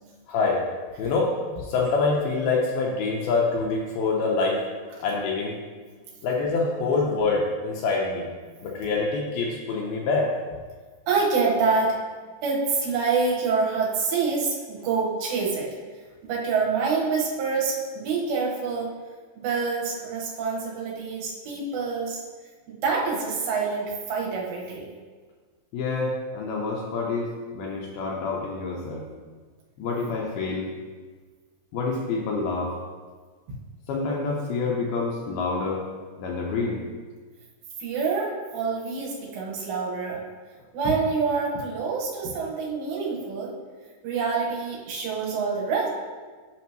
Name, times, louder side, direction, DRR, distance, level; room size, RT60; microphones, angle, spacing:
voice 1, 0.3-0.6 1.0-1.3 1.6-4.6 5.0-5.5 6.2-8.3 8.6-10.3 25.7-29.0 29.8-30.7 31.7-32.7 33.9-35.8 36.2-36.8, left 3 dB, 75° left, -1 dB, 2.4 m, -26 dB
voice 2, 11.1-12.0 12.4-15.7 16.2-18.9 19.4-22.2 22.7-24.9 33.5-33.6 37.8-40.2 40.7-43.5 44.0-45.9, right 4 dB, 80° right, -4 dB, 3.6 m, -26 dB
9.2 x 6.3 x 3.0 m, 1.4 s
omnidirectional pair, 4.9 m